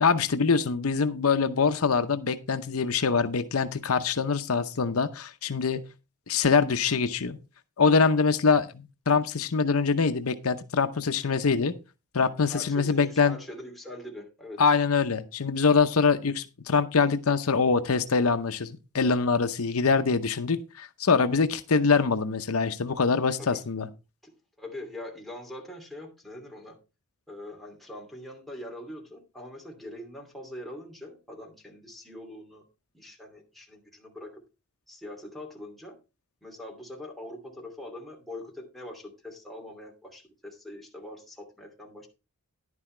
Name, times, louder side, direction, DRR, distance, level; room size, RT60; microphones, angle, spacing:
voice 1, 0.0-5.9 6.3-7.4 7.8-11.7 12.1-13.4 14.6-23.9, left 5 dB, 75° left, 9 dB, 0.8 m, -24 dB
voice 2, 12.5-14.6 23.4-23.6 24.2-24.3 24.6-26.8 27.3-32.7 32.9-34.4 34.9-36.0 36.4-42.1, left 1 dB, ahead, 0 dB, 2.7 m, -43 dB
11.0 x 9.7 x 3.2 m, 0.28 s
head